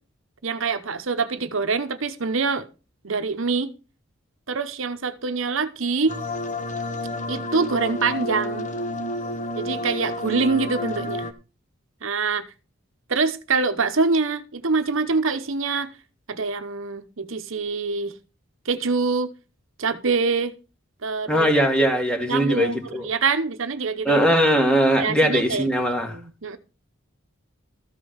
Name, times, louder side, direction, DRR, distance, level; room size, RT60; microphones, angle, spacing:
voice 1, 0.4-2.7 3.0-3.7 4.5-6.2 7.3-8.7 9.5-11.3 12.0-12.4 13.1-15.9 16.3-18.1 18.6-19.3 19.8-20.5 21.0-21.5 22.3-24.2 25.0-25.7 26.1-26.6, right 4 dB, 70° right, 0.9 m, -25 dB
sound 1, 6.1-11.3, left 1 dB, 35° left, 1.1 m, -30 dB
voice 2, 21.3-23.1 24.1-26.2, equal, 5° left, 1.8 m, -20 dB
14.0 x 5.5 x 6.4 m
head